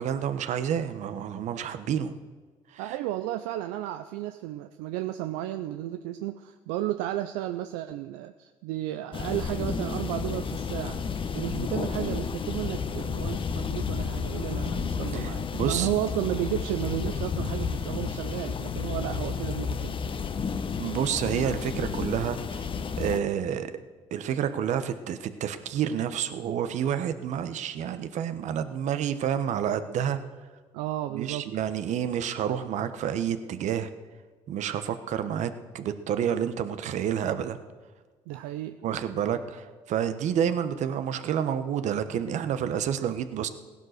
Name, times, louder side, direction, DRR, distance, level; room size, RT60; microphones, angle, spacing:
voice 1, 0.0-2.1 2.7-2.8 15.1-15.9 20.8-22.7 23.0-23.7 24.1-30.2 31.1-33.9 34.5-37.6 38.8-43.5, right 9 dB, 65° right, 11 dB, 1.2 m, -29 dB
voice 2, 2.8-11.0 11.3-20.0 30.7-31.5 38.3-38.8, right 14 dB, 85° right, 9 dB, 0.5 m, -33 dB
sound 1, 9.1-23.2, left 6 dB, 40° left, 1.0 m, -31 dB
16.5 x 10.5 x 6.6 m, 1.4 s
supercardioid pair, 65°, 13 cm